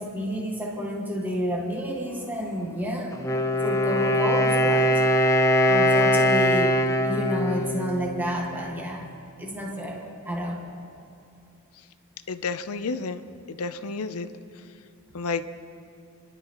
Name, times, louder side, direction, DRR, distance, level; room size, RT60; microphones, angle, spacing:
voice 1, 0.0-3.2 3.6-5.0 5.7-6.8 7.0-9.0 9.4-10.6, equal, 10° right, -2 dB, 1.7 m, -30 dB
Wind instrument woodwind instrument, 3.1-8.9, left 1 dB, 15° left, 0.7 m, -22 dB
voice 2, 12.3-13.2 13.5-14.3 15.1-15.5, left 4 dB, 75° left, 11 dB, 0.6 m, -30 dB
28.5 x 11.5 x 3.0 m, 2.5 s
head